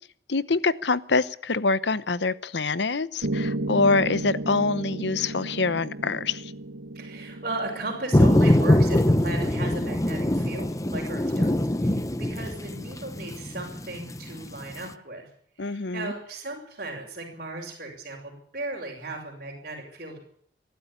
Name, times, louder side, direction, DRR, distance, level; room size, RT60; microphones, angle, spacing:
voice 1, 0.3-6.5 15.6-16.1, left 3 dB, 75° left, 16 dB, 0.9 m, -25 dB
Piano, 3.2-11.3, right 1 dB, 80° right, 1.1 m, -34 dB
voice 2, 6.9-15.3 15.6-20.2, right 2 dB, 50° right, -5 dB, 6.0 m, -36 dB
sound 1, 8.1-14.8, left 1 dB, 20° left, 0.9 m, -23 dB
23.5 x 12.5 x 10.0 m, 0.63 s
head